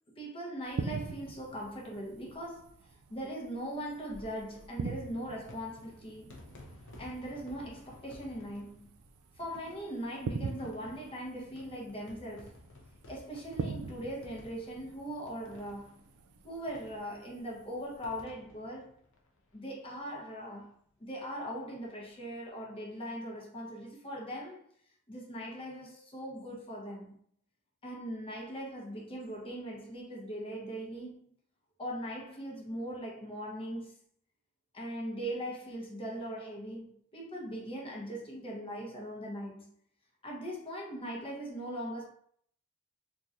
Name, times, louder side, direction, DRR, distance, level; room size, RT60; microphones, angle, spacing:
voice 1, 0.2-6.3 7.0-8.9 9.4-12.6 13.1-16.0 16.4-19.0 19.5-20.7 21.0-24.6 25.1-27.1 27.8-31.2 31.8-33.9 34.7-39.7 40.2-42.1, equal, 25° left, 0.9 m, -40 dB
sound 1, 0.7-18.2, right 5 dB, 70° right, 0.3 m, -44 dB
sound 2, 4.0-20.0 20.3-20.4 20.6-20.7 22.0-22.2, left 1 dB, 60° left, 0.7 m, -55 dB
3.7 x 2.8 x 2.5 m
head